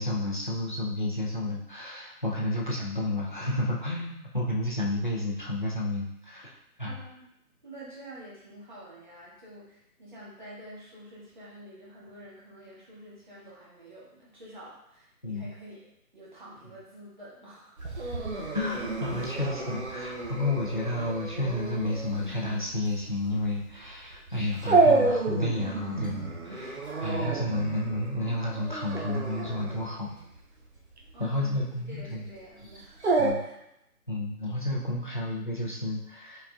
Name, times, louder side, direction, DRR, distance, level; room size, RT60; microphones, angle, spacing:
voice 1, 0.0-7.0 15.2-15.5 18.5-30.1 31.2-32.2 33.2-33.4 34.1-36.4, left 1 dB, 35° left, -3 dB, 0.5 m, -31 dB
voice 2, 6.9-7.3 7.6-18.2 31.1-33.1 33.3-33.6, right 1 dB, 30° right, -7 dB, 1.3 m, -48 dB
Dog, 17.8-33.3, right 3 dB, 45° right, 0.6 m, -30 dB
4.7 x 4.1 x 2.3 m, 0.81 s
hypercardioid pair, 175°, 45 cm